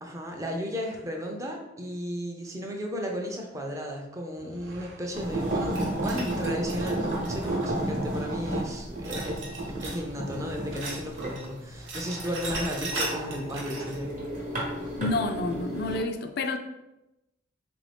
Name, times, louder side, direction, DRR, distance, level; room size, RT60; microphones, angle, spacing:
voice 1, 0.0-9.5 9.8-14.1, equal, 15° right, 1 dB, 0.4 m, -34 dB
sound 1, 4.3-7.0 9.6-11.9, right 1 dB, 65° right, 0.5 m, -45 dB
sound 2, 5.1-16.0, right 1 dB, 40° right, 0.9 m, -32 dB
sound 3, 5.7-7.8 9.0-10.1 10.3-11.5 11.7-14.0, right 2 dB, 90° right, 0.9 m, -37 dB
voice 2, 15.0-16.6, left 2 dB, 55° left, 7 dB, 0.3 m, -29 dB
3.6 x 2.6 x 3.3 m, 0.95 s
head